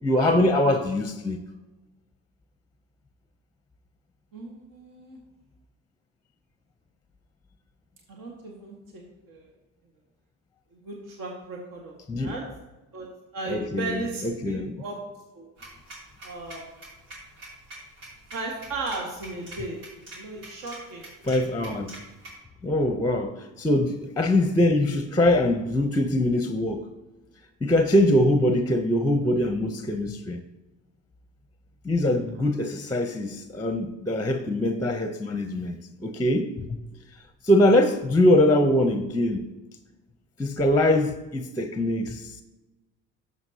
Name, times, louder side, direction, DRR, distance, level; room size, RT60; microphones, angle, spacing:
voice 1, 0.0-1.4 12.1-12.4 13.5-14.8 21.2-21.9 22.6-26.9 27.6-30.4 31.8-36.5 37.4-39.5 40.4-42.4, left 1 dB, 10° left, 0.7 m, -23 dB
voice 2, 4.3-5.2 8.1-9.5 10.7-12.4 12.9-13.1 13.3-15.0 15.3-15.5 16.2-16.6 18.3-19.8 20.1-21.1, right 2 dB, 60° right, 1.8 m, -36 dB
sound 1, 15.6-22.3, right 2 dB, 85° right, 3.2 m, -44 dB
12.0 x 7.3 x 2.8 m
supercardioid pair, 70°, 37 cm